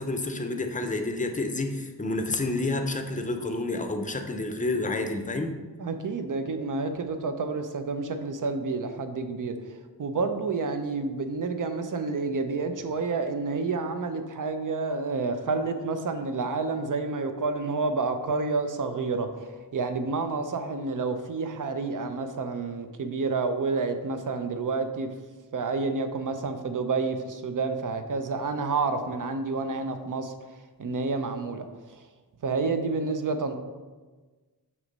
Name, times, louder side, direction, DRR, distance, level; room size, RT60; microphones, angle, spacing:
voice 1, 0.0-5.5, left 2 dB, 20° left, 5 dB, 0.6 m, -29 dB
voice 2, 5.8-9.6 10.0-25.1 25.5-30.3 30.8-31.7 31.9-32.0 32.4-33.6, right 4 dB, 50° right, 8 dB, 0.7 m, -29 dB
6.4 x 3.1 x 5.2 m, 1.3 s
wide cardioid pair, 90°, 40 cm